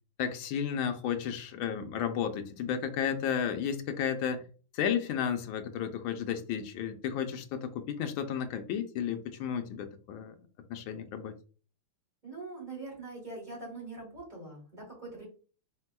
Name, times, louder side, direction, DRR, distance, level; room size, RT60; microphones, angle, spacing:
voice 1, 0.2-4.4 4.7-10.3 10.7-11.3, left 8 dB, 75° left, 6 dB, 1.4 m, -33 dB
voice 2, 12.2-15.2, right 3 dB, 20° right, -3 dB, 2.5 m, -43 dB
4.6 x 4.2 x 2.2 m, 0.38 s
omnidirectional pair, 2.3 m